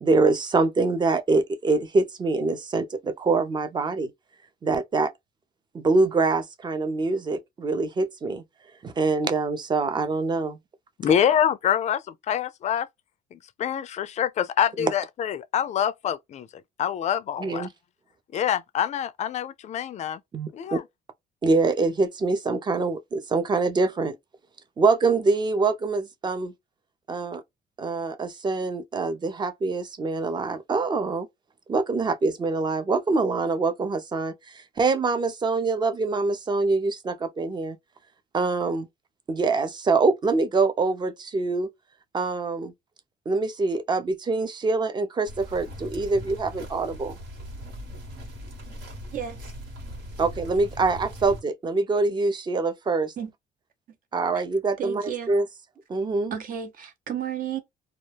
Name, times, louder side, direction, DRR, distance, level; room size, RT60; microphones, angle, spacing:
voice 1, 0.0-4.1 4.6-5.1 5.7-8.4 8.8-10.6 14.8-14.9 17.4-17.7 20.3-20.8 21.4-24.2 24.8-26.5 27.1-27.4 27.8-31.3 31.7-37.8 38.3-38.9 39.3-41.7 42.1-42.7 43.3-47.1 50.2-53.1 54.1-55.5 55.9-56.3, right 3 dB, 25° right, 0.5 m, -24 dB
voice 2, 11.0-12.9 13.3-16.5 16.8-17.7 18.3-20.2 20.5-20.8, left 9 dB, 45° left, 0.4 m, -26 dB
sound 1, 45.3-51.4, equal, 75° right, 1.4 m, -40 dB
voice 3, 49.1-49.5 53.2-53.3 54.3-54.4 54.8-55.3 56.3-57.6, right 9 dB, 55° right, 0.8 m, -33 dB
2.3 x 2.1 x 3.3 m
cardioid pair, 110°, 17 cm